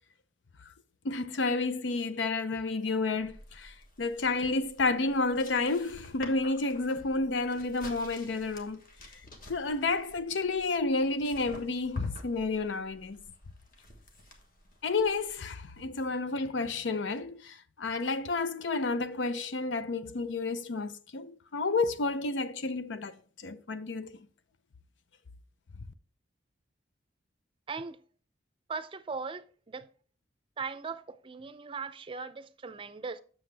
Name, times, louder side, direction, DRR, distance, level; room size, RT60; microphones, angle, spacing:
voice 1, 1.0-8.8 9.5-13.2 14.8-24.2, left 3 dB, 85° left, 0.6 m, -31 dB
sound 1, 3.2-15.9, left 1 dB, 50° left, 1.4 m, -52 dB
voice 2, 27.7-28.0 28.7-29.9 30.6-33.2, right 4 dB, 30° right, 0.4 m, -39 dB
7.8 x 6.8 x 3.3 m
head